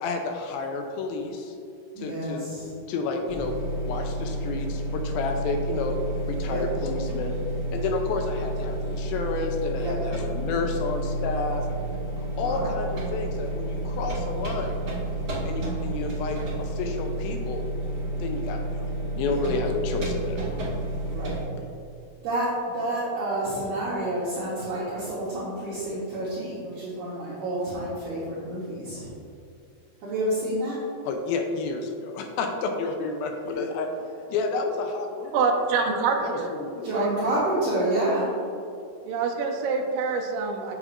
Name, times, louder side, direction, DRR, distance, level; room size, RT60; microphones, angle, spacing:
voice 1, 0.0-1.5 2.0-2.5 2.9-3.6 3.9-6.0 6.3-7.4 7.7-11.8 12.4-14.8 15.4-17.6 18.2-18.9 19.2-20.6 31.1-33.9 34.3-35.5 36.2-36.9, left 4 dB, 80° left, 4 dB, 2.3 m, -30 dB
voice 2, 1.9-2.7 6.5-6.6 9.8-9.9 12.3-12.8 19.3-19.5 21.1-21.4 22.2-29.1 30.0-30.8 33.4-33.7 34.0-34.1 36.8-38.3, right 1 dB, 65° right, -8 dB, 2.2 m, -29 dB
sound 1, 3.3-21.4, right 1 dB, 45° right, 1.1 m, -30 dB
voice 3, 35.3-36.5 36.9-37.1 39.1-40.7, right 4 dB, 80° right, 0 dB, 1.7 m, -25 dB
8.1 x 7.3 x 2.5 m, 2.6 s
omnidirectional pair, 4.5 m